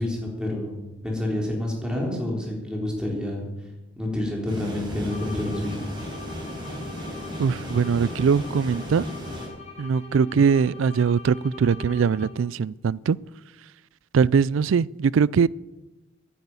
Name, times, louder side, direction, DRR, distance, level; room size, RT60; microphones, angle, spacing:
voice 1, 0.0-3.4 4.0-5.8, left 1 dB, 5° right, 3.8 m, -28 dB
sound 1, 4.5-9.5, equal, 25° right, 5.1 m, -35 dB
sound 2, 5.0-12.6, left 4 dB, 35° left, 4.5 m, -43 dB
voice 2, 7.4-9.0 9.8-13.2 14.1-15.5, right 6 dB, 75° right, 0.4 m, -21 dB
11.0 x 10.0 x 9.5 m
head